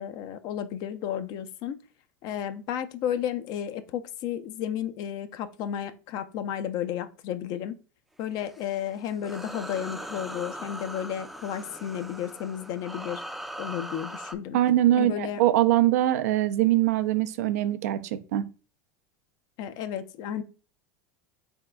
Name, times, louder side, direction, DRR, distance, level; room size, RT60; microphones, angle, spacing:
voice 1, 0.0-1.8 2.2-7.8 8.2-13.2 13.6-14.6 15.0-15.4 19.6-20.4, left 10 dB, 55° left, 0.5 m, -33 dB
sound 1, 8.3-14.3, right 1 dB, ahead, 0.4 m, -40 dB
voice 2, 14.5-18.5, right 13 dB, 75° right, 0.4 m, -23 dB
3.9 x 3.5 x 2.2 m
hypercardioid pair, 95°, 9 cm